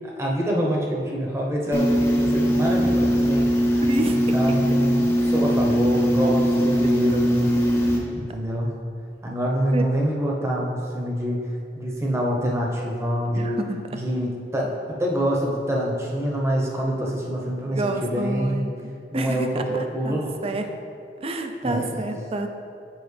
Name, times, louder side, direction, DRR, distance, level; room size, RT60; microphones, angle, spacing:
voice 1, 0.0-3.8 4.3-7.5 8.1-8.7 9.2-11.4 11.8-13.6 13.9-14.7 15.0-18.7 19.1-20.4 21.6-22.0, equal, 15° right, -2 dB, 0.8 m, -26 dB
sound 1, 1.7-8.0, equal, 15° left, 0.8 m, -21 dB
voice 2, 3.9-4.2 6.2-6.4 7.1-7.2 9.7-9.8 13.3-13.9 17.7-18.7 19.1-19.6 20.0-20.7 21.2-22.5, right 2 dB, 35° right, 6 dB, 0.4 m, -28 dB
7.1 x 5.0 x 3.3 m, 2.5 s
head